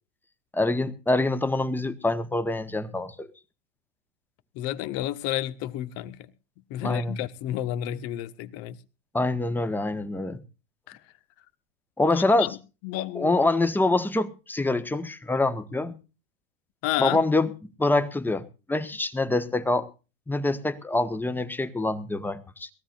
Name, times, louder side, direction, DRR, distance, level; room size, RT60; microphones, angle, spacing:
voice 1, 0.5-3.3 6.8-7.2 9.1-10.4 12.0-12.5 13.1-16.0 17.0-17.5 17.8-19.9 20.3-22.7, left 2 dB, 5° left, 1.4 m, -25 dB
voice 2, 4.5-6.3 6.7-8.8 10.9-11.0 12.1-12.5 12.8-13.4 16.8-17.2, left 13 dB, 50° left, 1.5 m, -31 dB
21.5 x 16.0 x 2.6 m
hypercardioid pair, 90°, 31 cm